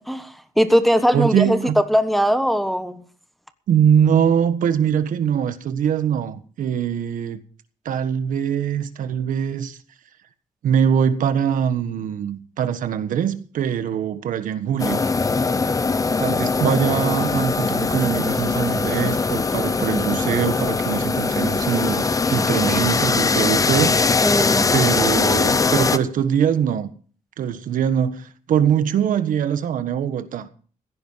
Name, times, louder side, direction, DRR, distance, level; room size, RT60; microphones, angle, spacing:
voice 1, 0.1-1.6 1.9-3.0 24.2-24.6, equal, ahead, 1.2 m, -20 dB
voice 2, 1.1-1.8 3.7-7.4 7.8-9.8 10.6-15.0 16.2-24.0 24.7-26.9 27.4-30.5, right 8 dB, 80° right, 1.4 m, -22 dB
sound 1, 14.8-26.0, left 4 dB, 25° left, 0.8 m, -21 dB
16.0 x 10.0 x 5.7 m
cardioid pair, 135°, 14 cm